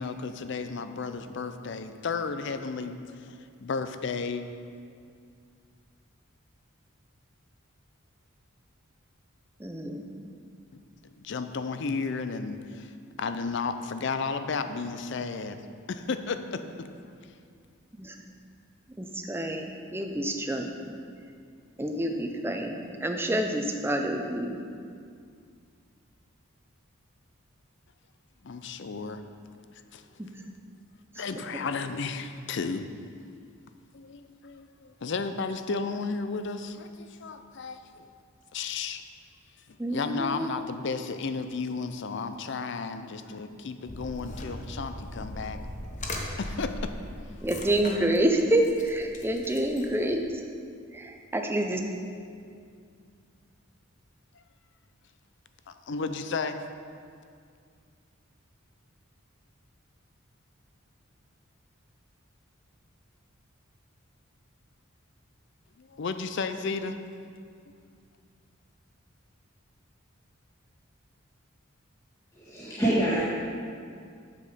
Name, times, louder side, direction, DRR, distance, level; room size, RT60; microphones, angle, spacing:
voice 1, 0.0-4.4 10.7-12.9 13.2-15.6 15.9-16.9 28.4-29.2 29.7-30.0 31.2-32.9 33.9-38.1 38.5-39.0 39.9-45.6 46.4-46.9 55.7-56.6 65.8-67.0, left 4 dB, 60° left, 9 dB, 0.5 m, -33 dB
voice 2, 9.6-10.1 18.0-18.1 19.0-20.7 21.8-24.5 39.8-40.5 47.4-50.2 50.9-51.8, right 1 dB, 10° right, 4 dB, 0.5 m, -28 dB
sound 1, 43.9-50.2, left 1 dB, 35° left, 0.9 m, -39 dB
voice 3, 72.4-73.2, right 1 dB, 15° left, -11 dB, 1.8 m, -25 dB
7.6 x 6.8 x 5.0 m, 2.3 s
head